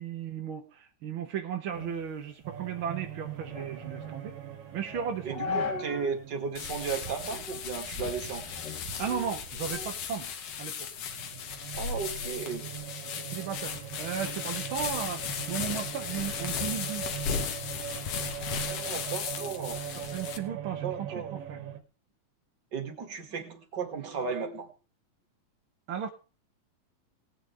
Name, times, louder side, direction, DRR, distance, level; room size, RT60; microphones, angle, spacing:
voice 1, 0.0-4.4 4.7-5.7 9.0-10.3 10.6-10.9 13.2-17.0 20.0-21.6 25.9-26.1, right 8 dB, 75° right, 5 dB, 1.2 m, -35 dB
sound 1, 1.7-6.2 6.6-6.7 7.3-7.7 8.0-10.1 10.5-12.9, left 4 dB, 85° left, 4.1 m, -39 dB
sound 2, 2.5-10.6 10.9-21.8, right 10 dB, 90° right, 2.8 m, -41 dB
voice 2, 5.2-8.8 11.7-12.7 18.7-19.8 20.8-21.4 22.7-24.7, right 6 dB, 40° right, 5 dB, 2.1 m, -35 dB
sound 3, 6.6-20.4, left 7 dB, 60° left, 1.9 m, -36 dB
19.0 x 9.0 x 3.4 m, 0.33 s
omnidirectional pair, 3.8 m